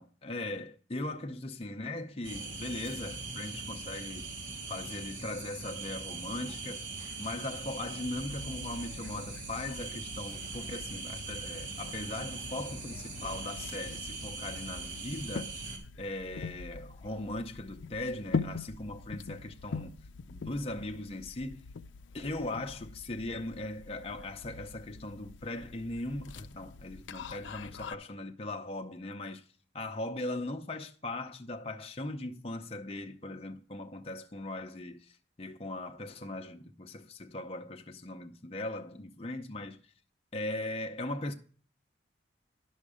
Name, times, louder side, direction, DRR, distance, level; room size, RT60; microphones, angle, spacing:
voice 1, 0.0-4.3 4.7-6.9 7.2-15.6 16.0-19.9 20.3-21.7 22.1-29.4 29.7-39.8 40.3-41.3, left 2 dB, 30° left, 0.7 m, -39 dB
sound 1, 2.2-15.8, right 3 dB, 90° right, 3.0 m, -41 dB
sound 2, 8.2-27.9, left 4 dB, 85° left, 0.4 m, -43 dB
11.0 x 6.4 x 4.9 m
head